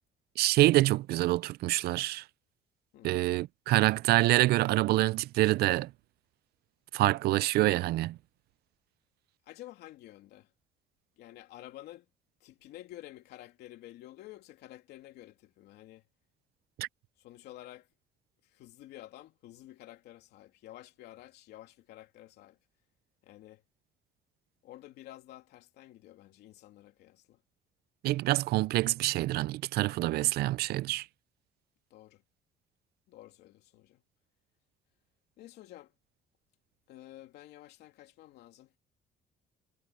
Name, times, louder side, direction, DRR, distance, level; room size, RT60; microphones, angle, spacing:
voice 1, 0.4-2.2 3.0-5.9 6.9-8.2 16.8-16.9 28.0-31.0, right 17 dB, 70° right, 0.4 m, -26 dB
voice 2, 9.5-10.5 11.2-12.1 12.4-16.0 17.2-17.9 18.4-22.6 23.2-23.6 24.6-27.4 31.9-32.2 33.1-34.0 35.4-35.9 36.9-38.7, left 14 dB, 80° left, 2.9 m, -51 dB
cardioid pair, 110°, 17 cm